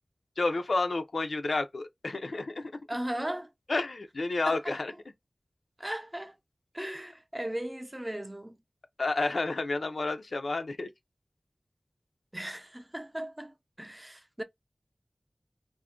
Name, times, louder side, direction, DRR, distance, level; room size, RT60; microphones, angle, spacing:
voice 1, 0.4-2.7 3.7-4.9 9.0-10.9, left 3 dB, 90° left, 0.4 m, -30 dB
voice 2, 2.9-3.5 4.5-4.6 5.8-6.4 6.7-8.6 12.3-14.4, right 1 dB, 20° right, 0.5 m, -37 dB
2.4 x 2.1 x 3.5 m
wide cardioid pair, 50°, 0 cm